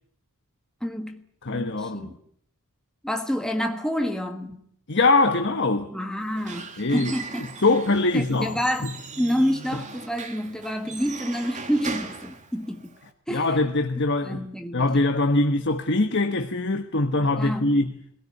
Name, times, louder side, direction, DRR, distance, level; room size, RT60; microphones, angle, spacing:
voice 1, 0.8-1.2 1.5-2.2 3.0-4.6 5.9-7.5 8.1-8.9 9.2-12.9 13.3-13.5 14.2-14.9 17.4-17.7, equal, 5° left, 1.5 m, -28 dB
voice 2, 1.4-2.1 4.9-5.9 6.8-7.1 7.6-8.9 13.3-14.5 14.7-18.0, left 2 dB, 55° left, 1.3 m, -23 dB
Squeak / Wood, 6.2-13.1, right 4 dB, 35° right, 2.4 m, -39 dB
24.0 x 17.5 x 9.8 m
head